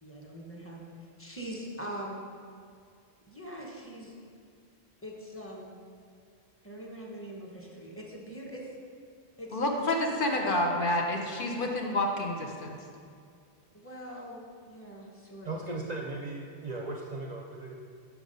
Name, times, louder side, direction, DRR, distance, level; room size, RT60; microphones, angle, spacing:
voice 1, 0.0-2.3 3.3-4.1 5.0-5.7 6.6-8.7 9.4-9.6 13.7-15.6, right 1 dB, 15° left, -2 dB, 1.0 m, -42 dB
voice 2, 9.5-12.8, left 1 dB, 55° left, 1 dB, 0.9 m, -29 dB
voice 3, 15.4-17.7, right 2 dB, 50° right, 0 dB, 0.6 m, -37 dB
5.9 x 5.8 x 5.3 m, 2.3 s
omnidirectional pair, 1.1 m